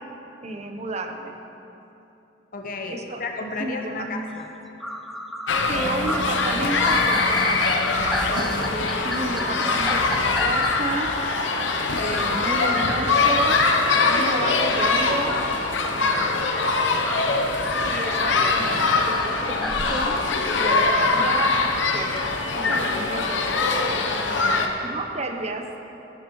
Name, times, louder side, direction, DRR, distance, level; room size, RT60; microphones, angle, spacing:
voice 1, 0.4-1.4 2.9-3.2 3.6-3.7 5.7-7.9 8.3-11.1 12.0-15.4 15.9-16.7 17.8-20.2 20.5-22.2 22.6-23.6 24.8-25.6, right 2 dB, 35° right, 4 dB, 0.8 m, -31 dB
voice 2, 2.5-4.5 24.1-24.8, left 2 dB, 50° left, 2 dB, 1.0 m, -33 dB
sound 1, 4.4-4.5 4.8-10.7 15.8-20.1, equal, ahead, 0.4 m, -33 dB
sound 2, 5.5-24.7, left 3 dB, 80° left, 0.9 m, -22 dB
Piano, 5.6-12.8, left 1 dB, 85° right, 2.1 m, -41 dB
15.0 x 9.7 x 3.1 m, 2.9 s
head